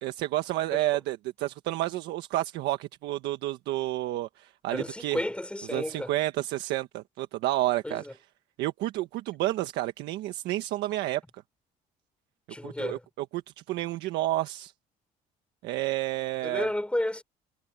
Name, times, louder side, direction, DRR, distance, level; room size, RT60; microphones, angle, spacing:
voice 1, 0.0-5.2 5.7-8.0 8.6-11.2 12.6-13.4 13.7-14.7 15.6-16.7, right 16 dB, 85° right, 1.4 m, -30 dB
voice 2, 4.7-6.1 7.8-8.1 12.5-13.0 16.4-17.2, left 1 dB, 5° left, 5.0 m, -32 dB
cardioid pair, 110°, 17 cm